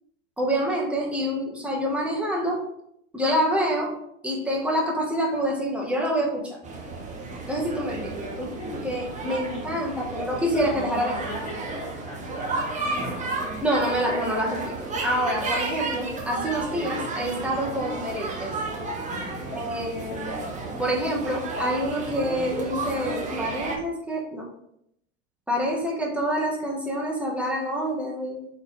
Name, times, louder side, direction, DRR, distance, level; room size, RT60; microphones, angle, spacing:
voice 1, 0.4-2.6 3.1-3.9 4.2-6.6 7.5-8.5 8.8-11.2 13.6-14.7 15.0-18.5 19.5-20.5 20.8-24.5 25.5-28.5, equal, 5° right, -3 dB, 1.3 m, -27 dB
sound 1, 6.6-23.8, right 3 dB, 20° right, 0.9 m, -32 dB
voice 2, 8.6-8.9 9.2-9.7 10.5-13.2 19.1-19.5, left 1 dB, 80° left, -6 dB, 1.4 m, -38 dB
4.2 x 3.7 x 3.3 m, 0.74 s
hypercardioid pair, 100°, 38 cm